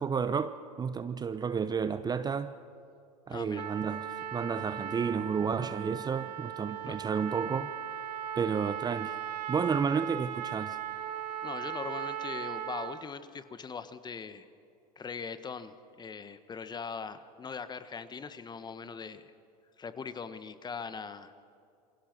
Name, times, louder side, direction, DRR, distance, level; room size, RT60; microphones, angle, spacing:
voice 1, 0.0-2.5 3.3-4.1 4.3-7.7 8.4-9.1 9.5-10.8, right 6 dB, 20° right, 12 dB, 0.8 m, -31 dB
voice 2, 3.3-3.7 6.8-7.0 11.4-14.5 15.0-19.3 19.8-21.3, left 5 dB, 20° left, 12 dB, 1.4 m, -41 dB
Trumpet, 3.6-13.1, right 10 dB, 75° right, 1.4 m, -38 dB
28.5 x 22.5 x 6.2 m, 2.5 s
hypercardioid pair, 95°, 21 cm